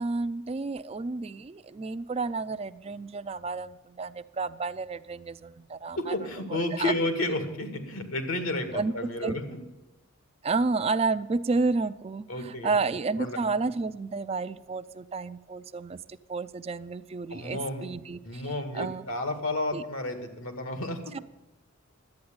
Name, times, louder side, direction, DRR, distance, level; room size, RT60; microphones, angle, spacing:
voice 1, 0.0-6.1 6.7-6.9 8.7-9.4 10.4-18.4 18.7-19.0 19.7-19.8 21.1-21.2, right 3 dB, 30° right, 13 dB, 0.4 m, -31 dB
voice 2, 6.0-9.6 12.3-12.7 13.2-13.4 17.3-17.8 18.3-21.1, left 2 dB, 80° left, 7 dB, 1.9 m, -31 dB
11.5 x 8.8 x 8.6 m, 1.0 s
head